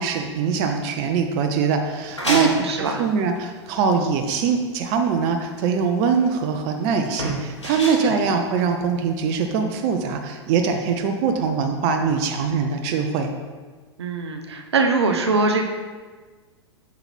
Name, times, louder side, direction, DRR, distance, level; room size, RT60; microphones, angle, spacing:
voice 1, 0.0-13.3, right 5 dB, 40° right, 5 dB, 0.6 m, -22 dB
sound 1, 1.9-9.3, equal, 80° left, 1.4 m, -32 dB
voice 2, 2.2-3.0 8.0-8.2 14.0-15.6, right 3 dB, 65° right, 4 dB, 0.8 m, -22 dB
7.0 x 3.8 x 4.4 m, 1.4 s
figure-of-eight pair, 95°, 15 cm